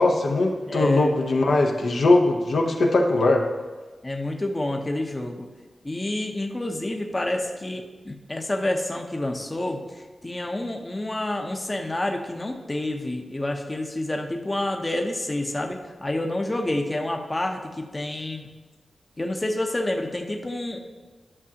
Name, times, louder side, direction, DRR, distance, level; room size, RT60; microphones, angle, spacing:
voice 1, 0.0-3.4, left 2 dB, 75° left, 1 dB, 0.8 m, -20 dB
voice 2, 0.7-1.2 4.0-5.5 5.8-18.4 19.2-20.8, left 1 dB, 25° left, 3 dB, 0.7 m, -28 dB
11.0 x 6.1 x 2.8 m, 1.3 s
wide cardioid pair, 75°, 0 cm